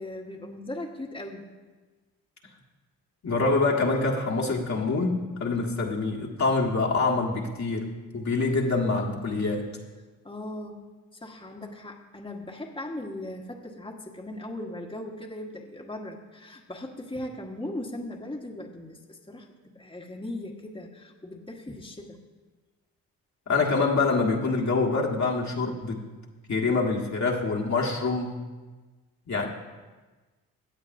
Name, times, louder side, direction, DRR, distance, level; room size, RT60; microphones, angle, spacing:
voice 1, 0.0-1.4 10.2-10.8 11.1-22.2, left 1 dB, 15° left, 0 dB, 1.4 m, -38 dB
voice 2, 3.2-9.7 23.5-26.0 26.5-28.4 29.3-29.5, left 3 dB, 45° left, -1 dB, 1.6 m, -25 dB
16.5 x 8.5 x 2.7 m, 1.3 s
supercardioid pair, 55°, 37 cm